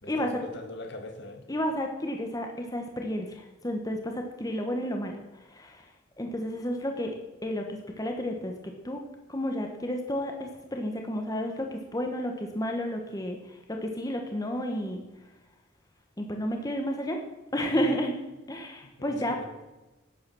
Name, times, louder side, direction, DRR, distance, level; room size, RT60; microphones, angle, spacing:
voice 1, 0.0-1.4 17.7-18.0 19.0-19.4, left 2 dB, 60° left, 6 dB, 1.7 m, -41 dB
voice 2, 1.5-5.2 5.5-5.9 6.2-7.1 7.4-8.5 8.8-9.0 9.3-13.6 13.8-15.0 16.2-17.2 17.5-18.2 18.5-19.4, equal, 20° left, 3 dB, 1.1 m, -31 dB
11.5 x 9.6 x 6.1 m, 1.1 s
head